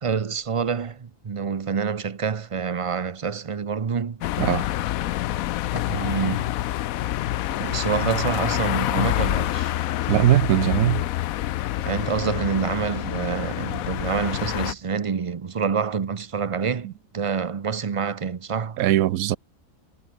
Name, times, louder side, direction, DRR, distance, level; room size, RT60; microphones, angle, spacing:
voice 1, 0.0-4.2 5.7-6.6 7.6-9.7 11.8-16.9 17.1-18.8, right 6 dB, 40° right, 0.4 m, -27 dB
sound 1, 4.2-14.7, left 14 dB, 80° left, 1.0 m, -27 dB
voice 2, 10.1-11.1 16.8-16.9 18.8-19.4, right 13 dB, 85° right, 1.1 m, -20 dB
omnidirectional pair, 1.5 m